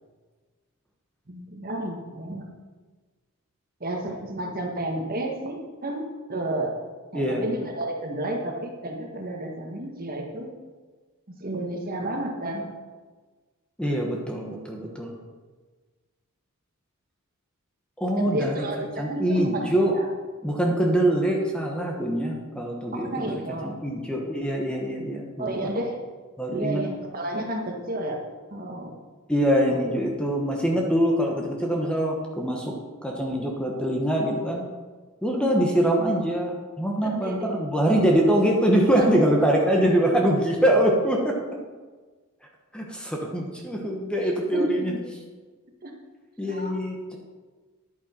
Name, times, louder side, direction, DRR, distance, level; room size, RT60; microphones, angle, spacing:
voice 1, 1.3-2.4 3.8-6.7 7.1-10.5 11.3-12.7 18.2-20.1 22.9-23.7 25.4-26.0 26.5-28.2 28.5-28.9 29.7-29.8 37.0-37.5 39.0-39.1 44.2-45.0 45.8-45.9 46.4-46.8, right 1 dB, 40° right, 1 dB, 1.5 m, -31 dB
voice 2, 7.1-7.5 13.8-15.2 18.0-18.6 19.0-20.0 20.4-23.4 23.6-25.7 26.4-26.8 29.3-32.7 33.0-34.7 35.2-41.4 42.7-44.9 46.4-47.2, right 1 dB, 5° left, 0 dB, 1.2 m, -24 dB
10.5 x 9.3 x 4.4 m, 1.4 s
head